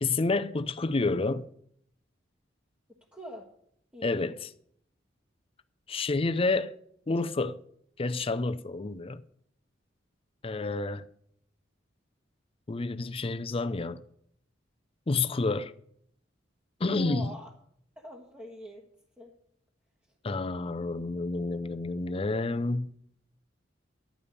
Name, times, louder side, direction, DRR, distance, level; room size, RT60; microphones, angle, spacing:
voice 1, 0.0-1.5 4.0-4.5 5.9-6.7 7.1-7.6 8.0-9.2 10.4-11.0 12.7-14.0 15.1-15.7 16.8-17.4 20.2-22.9, left 3 dB, 30° left, 0.5 m, -29 dB
voice 2, 3.1-3.4 3.9-4.3 16.9-17.5 18.0-18.8 19.2-19.3, equal, 10° right, 1.3 m, -43 dB
11.0 x 5.3 x 8.3 m
head